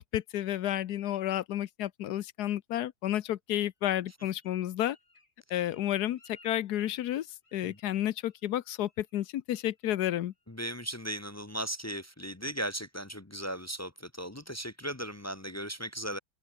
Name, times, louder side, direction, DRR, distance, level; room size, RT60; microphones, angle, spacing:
voice 1, 0.0-5.0 5.5-7.3 7.5-10.3, left 12 dB, 85° left, 1.3 m, -31 dB
Bird, 4.3-7.9 8.2-8.6 8.9-9.2 9.5-9.9 10.3-10.4, left 2 dB, 55° left, 5.9 m, -61 dB
voice 2, 10.5-16.2, right 1 dB, 15° left, 0.6 m, -37 dB
open air
omnidirectional pair, 1.6 m